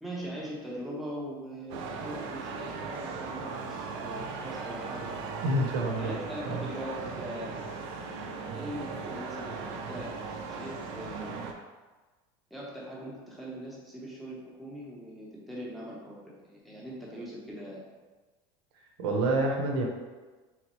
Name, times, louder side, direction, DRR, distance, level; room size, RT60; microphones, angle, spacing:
voice 1, 0.0-5.2 6.0-7.6 8.5-11.5 12.5-17.9, equal, ahead, -6 dB, 0.6 m, -41 dB
sound 1, 1.7-11.5, right 4 dB, 50° right, 0.4 m, -38 dB
voice 2, 5.4-6.1 6.5-6.6 19.0-19.8, right 2 dB, 85° right, 1 dB, 0.8 m, -27 dB
3.7 x 3.1 x 3.0 m, 1.3 s
cardioid pair, 170°, 13 cm